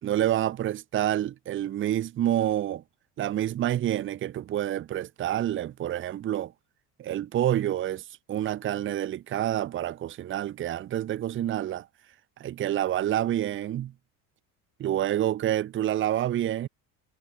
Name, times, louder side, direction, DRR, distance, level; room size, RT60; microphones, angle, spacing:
voice 1, 0.0-2.8 3.2-6.5 7.0-11.9 12.4-13.9 14.8-16.7, right 12 dB, 35° right, 1.1 m, -28 dB
cardioid pair, 165°, 36 cm